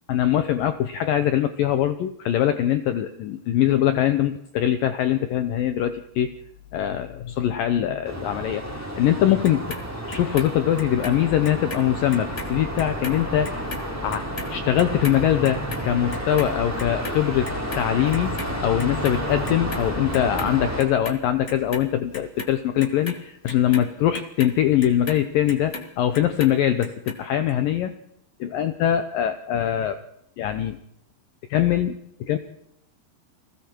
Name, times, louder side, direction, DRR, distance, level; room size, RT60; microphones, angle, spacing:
voice 1, 0.1-6.3 6.7-9.7 10.1-13.8 14.0-17.5 17.8-27.9 28.4-30.0 30.4-30.8 31.5-32.0 32.2-32.4, left 11 dB, 85° left, 10 dB, 2.0 m, -22 dB
sound 1, 8.0-20.8, equal, 5° right, 3.2 m, -31 dB
Clock, 9.4-11.8 12.1-18.5 18.8-19.8 20.1-21.1 21.5-25.9 26.1-27.1 27.5-27.6, left 2 dB, 50° left, 0.8 m, -37 dB
30.0 x 21.5 x 4.6 m, 0.77 s
omnidirectional pair, 5.2 m